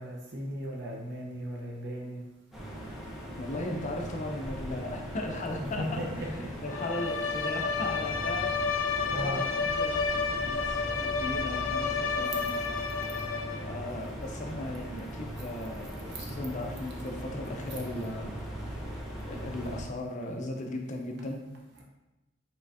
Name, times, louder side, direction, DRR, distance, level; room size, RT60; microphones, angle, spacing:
voice 1, 0.0-2.2 5.6-6.5 9.1-9.4 15.4-15.5 15.8-16.3 17.7-17.8 21.7-21.8, equal, 60° right, -2 dB, 0.9 m, -37 dB
sound 1, 2.5-19.8, right 1 dB, ahead, 0.9 m, -40 dB
voice 2, 3.4-18.3 19.3-21.4, left 1 dB, 40° left, 2 dB, 0.5 m, -37 dB
Bowed string instrument, 6.7-13.8, left 5 dB, 90° left, 0.6 m, -31 dB
5.5 x 3.4 x 2.6 m, 1.0 s
head